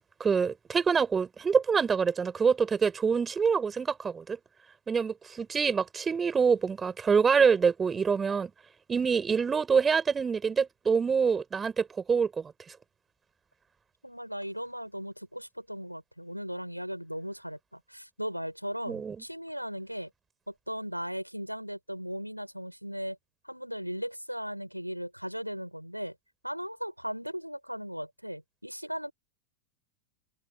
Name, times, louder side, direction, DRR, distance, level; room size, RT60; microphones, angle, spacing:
voice 1, 0.0-4.4 4.9-8.5 8.9-12.5 18.9-19.2, right 6 dB, 15° right, 6.9 m, -26 dB
voice 2, 14.0-20.1 20.5-23.2 23.4-26.1 26.4-29.1, equal, 90° right, 6.7 m, -37 dB
open air
figure-of-eight pair, 90°, 0 cm